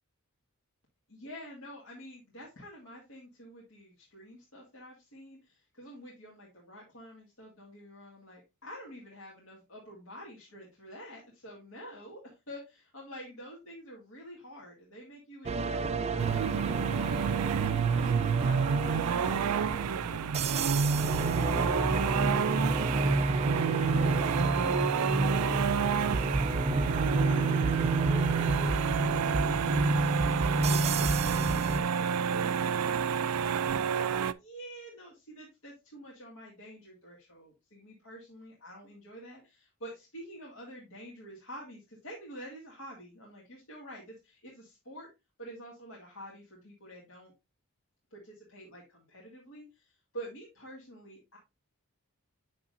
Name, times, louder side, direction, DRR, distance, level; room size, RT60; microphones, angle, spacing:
voice 1, 1.1-20.9 27.2-27.8 28.0-45.1 45.4-47.3 48.1-51.4, equal, 70° left, -3 dB, 2.0 m, -48 dB
sound 1, 15.5-31.8, right 2 dB, 30° right, 0.4 m, -30 dB
sound 2, 16.2-34.3, right 7 dB, 85° right, 0.4 m, -29 dB
8.4 x 6.1 x 2.6 m, 0.25 s
head